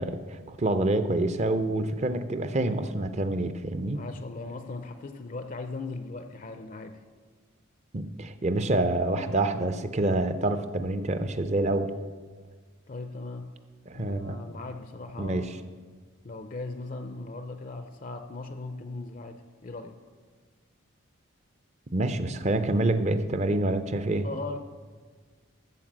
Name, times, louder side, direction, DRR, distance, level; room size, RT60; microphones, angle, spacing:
voice 1, 0.0-4.0 7.9-11.9 13.9-14.4 15.2-15.5 21.9-24.3, right 2 dB, 30° right, 10 dB, 0.5 m, -27 dB
voice 2, 3.9-7.0 12.9-13.5 13.9-15.6 16.2-20.0 24.2-24.6, left 3 dB, 40° left, 8 dB, 0.5 m, -38 dB
13.5 x 4.7 x 7.3 m, 1.5 s
head